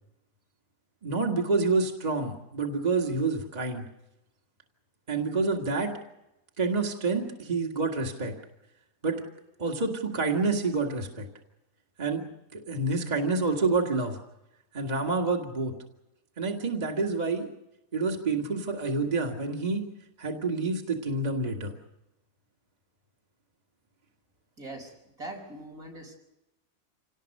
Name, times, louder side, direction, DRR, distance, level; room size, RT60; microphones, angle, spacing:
voice 1, 1.0-3.9 5.1-5.9 6.6-8.4 9.0-9.2 9.6-11.3 12.0-12.2 12.5-14.2 14.7-15.7 16.4-17.5 17.9-19.9 20.2-21.8, right 3 dB, 30° right, 2 dB, 2.0 m, -28 dB
voice 2, 24.6-24.9 25.2-26.2, right 2 dB, 75° right, 1 dB, 6.1 m, -41 dB
27.0 x 18.5 x 6.6 m, 0.90 s
omnidirectional pair, 1.5 m